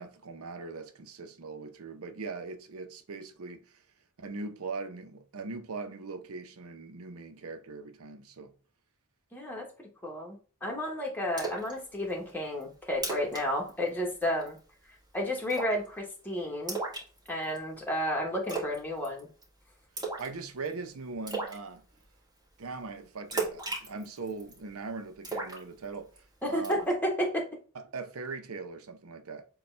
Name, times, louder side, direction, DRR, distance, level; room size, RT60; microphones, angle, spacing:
voice 1, 0.0-3.8 4.2-8.5 20.2-21.9 22.6-26.8 27.7-29.5, right 4 dB, 80° right, 0.7 m, -40 dB
voice 2, 9.3-9.7 10.0-14.6 15.1-16.8 17.3-19.3 26.4-27.5, equal, 10° left, 1.1 m, -32 dB
Splash splatter, 11.4-11.7 12.1-12.2 12.6-12.7 12.9-13.4 13.7-13.9 14.2-14.6 15.5-15.9 16.7-17.6 18.5-18.8 19.0-19.4 20.0-20.3 20.7-20.8 21.3-21.6 23.3-24.6 25.2-26.2 26.6-26.9, right 3 dB, 20° right, 1.8 m, -34 dB
6.8 x 2.3 x 3.2 m
head